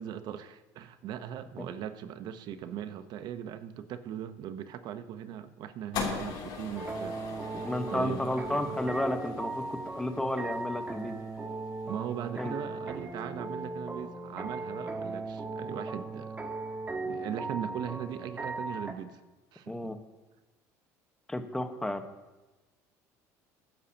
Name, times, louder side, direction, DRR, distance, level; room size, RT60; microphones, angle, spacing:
voice 1, 0.0-7.2 7.9-8.8 10.2-10.3 11.9-16.4 17.0-19.2 19.5-19.8, right 9 dB, 60° right, 10 dB, 1.0 m, -39 dB
sound 1, 5.9-12.3, left 5 dB, 65° left, 3.1 m, -41 dB
sound 2, 6.8-18.9, right 3 dB, 20° right, 1.6 m, -38 dB
voice 2, 7.5-11.2 12.3-12.5 19.7-20.0 21.3-22.0, left 1 dB, 10° left, 7 dB, 1.3 m, -32 dB
23.0 x 9.0 x 2.9 m, 1.1 s
supercardioid pair, 85°, 8 cm